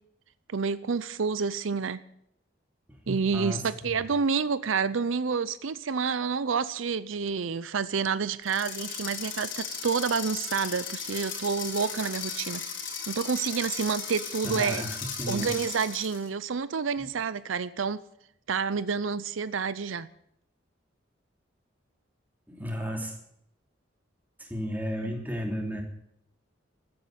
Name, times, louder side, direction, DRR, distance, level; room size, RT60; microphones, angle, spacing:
voice 1, 0.5-2.0 3.1-12.6 13.1-14.8 15.3-18.0 18.5-20.1 25.0-25.1, right 5 dB, 85° right, 16 dB, 0.6 m, -29 dB
voice 2, 2.9-3.9 14.4-15.5 22.5-23.1 24.4-25.8, equal, 10° right, 1 dB, 2.9 m, -34 dB
sound 1, 8.4-16.3, left 6 dB, 80° left, 3.8 m, -36 dB
14.0 x 9.4 x 8.9 m, 0.74 s
head